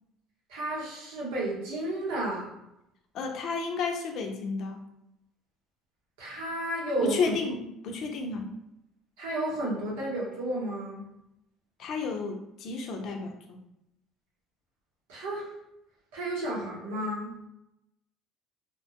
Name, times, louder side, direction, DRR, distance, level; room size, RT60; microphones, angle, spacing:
voice 1, 0.5-2.5 6.2-7.3 9.2-11.1 15.1-15.5 16.1-17.3, right 1 dB, 90° right, -5 dB, 1.0 m, -32 dB
voice 2, 3.1-4.8 7.0-7.6 7.8-8.5 11.8-13.6, left 4 dB, 60° left, 4 dB, 0.5 m, -32 dB
2.6 x 2.2 x 2.8 m, 0.83 s
supercardioid pair, 90°, 0 cm